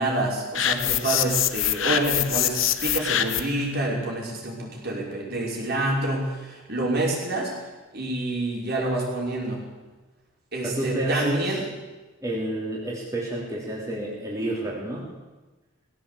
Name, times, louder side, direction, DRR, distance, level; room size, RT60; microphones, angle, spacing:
voice 1, 0.0-7.5 7.9-9.6 10.5-11.6, right 2 dB, 50° right, -2 dB, 5.8 m, -27 dB
sound 1, 0.5-3.6, left 11 dB, 65° left, 1.1 m, -24 dB
voice 2, 10.6-11.6 12.2-15.1, right 1 dB, 15° right, -4 dB, 3.4 m, -29 dB
19.5 x 16.0 x 8.5 m, 1.2 s
head